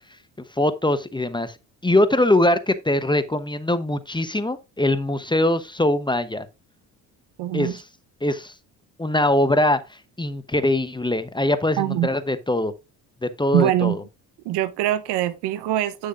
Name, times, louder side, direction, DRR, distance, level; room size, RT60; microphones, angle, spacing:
voice 1, 0.6-1.5 1.8-6.4 7.5-7.8 8.2-8.5 9.0-9.8 10.2-12.7 13.2-14.0, left 1 dB, 10° left, 0.9 m, -22 dB
voice 2, 7.4-7.8 11.8-12.1 13.5-14.0 14.4-16.1, right 13 dB, 70° right, 1.1 m, -23 dB
9.5 x 6.5 x 2.6 m
hypercardioid pair, 60°, 43 cm